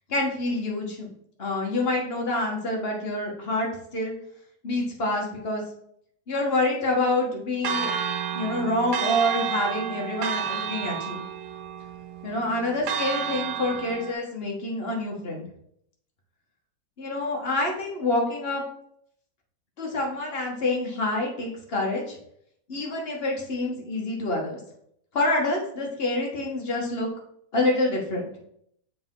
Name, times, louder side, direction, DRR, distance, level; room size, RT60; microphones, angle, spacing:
voice 1, 0.1-1.1 1.4-4.1 4.6-5.6 6.3-7.9 8.3-11.2 12.2-15.4 17.0-18.6 19.8-22.2 22.7-24.6 25.1-27.1 27.5-28.2, left 2 dB, 40° left, -1 dB, 1.5 m, -27 dB
Church bell, 7.6-14.1, right 7 dB, 80° right, 1.1 m, -31 dB
6.9 x 3.9 x 3.7 m, 0.70 s
omnidirectional pair, 1.8 m